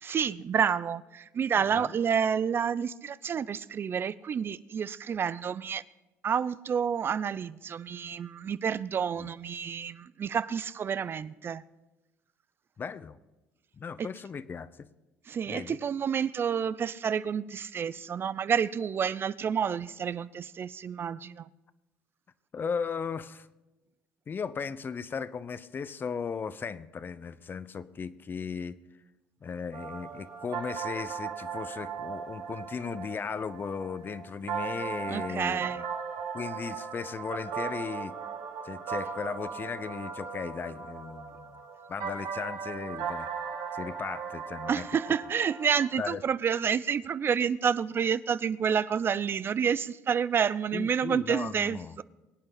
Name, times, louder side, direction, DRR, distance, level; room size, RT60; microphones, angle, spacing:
voice 1, 0.0-5.8 6.2-11.6 15.3-21.5 35.1-35.8 44.7-52.0, right 7 dB, 40° right, 0.5 m, -29 dB
voice 2, 12.8-13.2 13.8-14.9 15.5-15.8 22.5-23.5 24.3-28.8 29.4-35.8 36.3-38.1 38.6-41.6 41.9-43.3 43.7-44.9 46.0-46.2 50.7-52.0, left 6 dB, 35° left, 0.9 m, -36 dB
sound 1, 29.7-46.1, right 6 dB, 70° right, 2.5 m, -38 dB
23.0 x 8.8 x 5.8 m
supercardioid pair, 80°, 6 cm